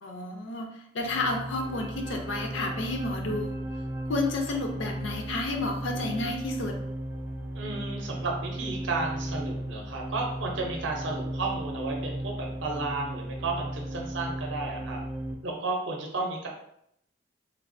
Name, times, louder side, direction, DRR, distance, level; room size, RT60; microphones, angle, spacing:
voice 1, 0.0-0.7 0.9-3.6 4.1-6.8, left 2 dB, 70° left, 2 dB, 0.5 m, -31 dB
sound 1, 1.0-15.3, right 1 dB, 15° right, 0.3 m, -35 dB
voice 2, 7.5-15.0 15.4-16.5, right 3 dB, 65° right, 0 dB, 0.6 m, -33 dB
3.3 x 2.3 x 2.5 m, 0.74 s
head